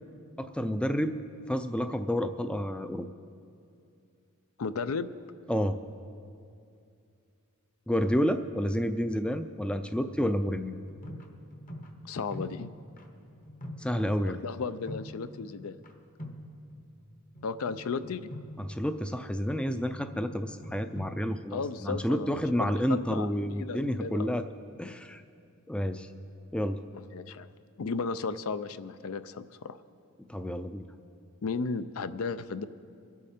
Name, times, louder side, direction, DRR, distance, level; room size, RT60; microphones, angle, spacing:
voice 1, 0.4-1.2 1.5-3.1 5.5-5.8 7.9-10.7 13.8-14.4 18.6-24.4 24.8-25.2 25.7-26.1 26.5-26.8 30.2-30.9, equal, 5° left, 9 dB, 0.3 m, -30 dB
voice 2, 4.6-5.1 12.0-12.7 14.2-15.8 17.4-18.3 21.5-24.3 26.9-27.5 27.8-29.8 31.4-32.6, left 4 dB, 70° left, 13 dB, 0.5 m, -35 dB
sound 1, 10.8-15.9 16.2-17.1 17.4-23.6, equal, 40° left, 1.0 m, -46 dB
23.5 x 8.4 x 4.3 m, 2.5 s
head